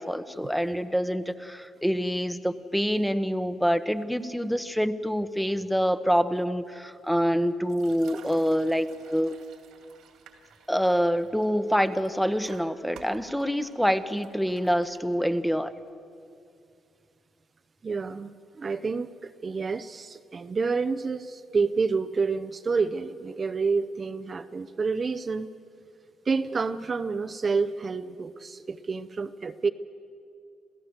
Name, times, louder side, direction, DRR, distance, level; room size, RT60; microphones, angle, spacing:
voice 1, 0.0-9.4 10.7-15.7, equal, ahead, 11 dB, 1.0 m, -26 dB
sound 1, 7.7-15.4, right 6 dB, 80° right, 2.3 m, -53 dB
voice 2, 17.8-25.5 26.3-29.7, right 4 dB, 35° right, 9 dB, 0.6 m, -29 dB
27.0 x 16.0 x 7.9 m, 2.5 s
cardioid pair, 90°, 0 cm